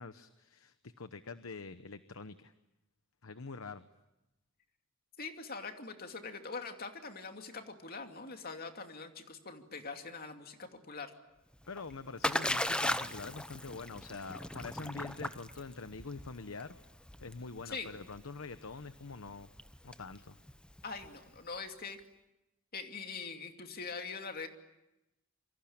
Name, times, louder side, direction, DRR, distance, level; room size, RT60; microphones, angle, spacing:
voice 1, 0.0-2.5 3.2-3.9 11.7-16.8 17.2-19.5 19.8-20.3, left 4 dB, 85° left, 11 dB, 1.0 m, -45 dB
voice 2, 5.2-11.1 17.7-17.9 20.8-22.0 22.7-24.5, left 4 dB, 45° left, 5 dB, 2.7 m, -43 dB
Splash splatter, 11.5-21.4, left 1 dB, 5° left, 0.9 m, -38 dB
27.0 x 24.5 x 8.8 m, 0.93 s
head